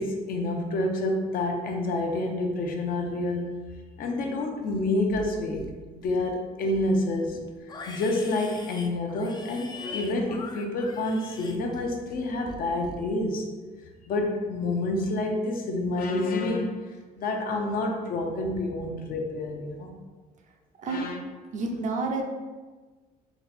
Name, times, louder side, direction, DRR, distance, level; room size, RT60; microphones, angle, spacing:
voice 1, 0.0-3.6 4.0-5.7 6.0-7.4 7.9-13.5 14.1-16.9 17.2-19.9 20.8-21.2, left 2 dB, 60° left, 2 dB, 0.7 m, -28 dB
Livestock farm animals working animals, 4.6-5.3 5.5-6.2 6.6-12.2 12.5-13.0, left 3 dB, 25° left, 0.4 m, -43 dB
voice 2, 21.5-22.2, right 3 dB, 45° right, 2 dB, 0.6 m, -29 dB
4.0 x 2.3 x 4.2 m, 1.3 s
cardioid pair, 110°, 17 cm